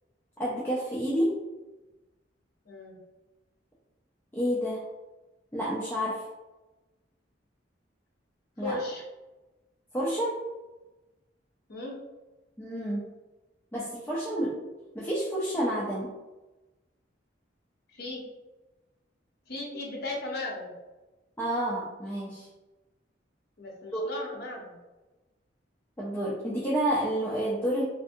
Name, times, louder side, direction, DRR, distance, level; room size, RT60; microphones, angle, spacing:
voice 1, 0.4-1.4 4.3-4.8 5.5-6.3 8.6-8.8 9.9-10.4 12.6-13.1 13.7-14.6 14.9-16.1 21.4-22.5 23.9-24.0 26.0-27.8, equal, 10° left, -7 dB, 0.4 m, -29 dB
voice 2, 2.7-3.0 8.6-9.0 11.7-12.0 17.9-18.2 19.5-20.7 23.6-24.7, left 2 dB, 55° left, -1 dB, 0.7 m, -36 dB
2.6 x 2.5 x 2.5 m, 1.1 s
head